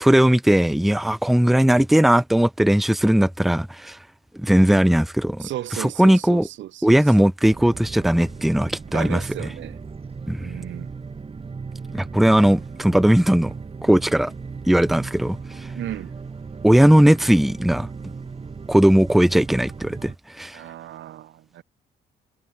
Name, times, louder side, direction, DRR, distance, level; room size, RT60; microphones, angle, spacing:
voice 1, 0.0-4.0 4.3-5.5 5.8-6.5 6.8-9.5 10.3-10.5 11.9-13.5 13.8-14.3 14.7-15.4 16.6-17.9 18.7-20.6, right 1 dB, ahead, 0.6 m, -18 dB
voice 2, 5.4-7.0 8.9-9.8 10.4-11.0 15.8-16.1 20.5-21.6, right 13 dB, 70° right, 0.8 m, -34 dB
sound 1, 7.5-20.2, right 5 dB, 30° right, 1.5 m, -37 dB
cardioid pair, 90°, 20 cm